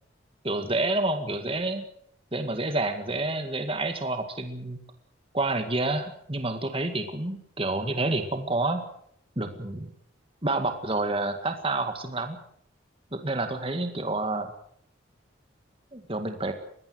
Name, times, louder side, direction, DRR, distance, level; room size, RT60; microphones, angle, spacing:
voice 1, 0.4-1.9 2.3-4.8 5.3-8.8 9.4-9.9 10.4-12.4 13.1-14.5 15.9-16.5, right 2 dB, 30° right, 7 dB, 2.0 m, -28 dB
22.0 x 18.0 x 8.0 m, 0.68 s
head